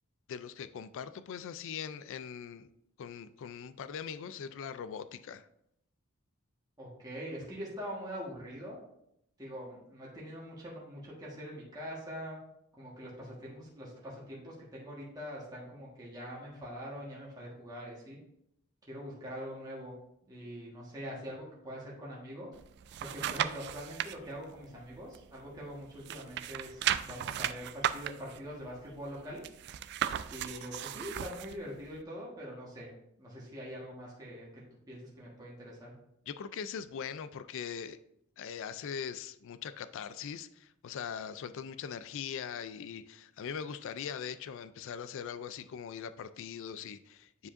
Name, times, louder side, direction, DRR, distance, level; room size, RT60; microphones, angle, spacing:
voice 1, 0.3-2.7 3.0-5.5 36.3-38.0 38.4-47.5, left 7 dB, 60° left, 13 dB, 0.3 m, -41 dB
voice 2, 6.8-8.8 9.4-12.4 12.8-18.2 18.9-20.0 20.3-22.5 23.0-29.4 30.3-32.9 33.2-34.6 34.9-35.9, equal, 20° right, -6 dB, 1.4 m, -43 dB
sound 1, 22.5-24.1 24.6-25.7 26.0-31.6 32.0-32.1, right 11 dB, 50° right, 0.3 m, -36 dB
9.6 x 4.9 x 2.5 m, 0.77 s
head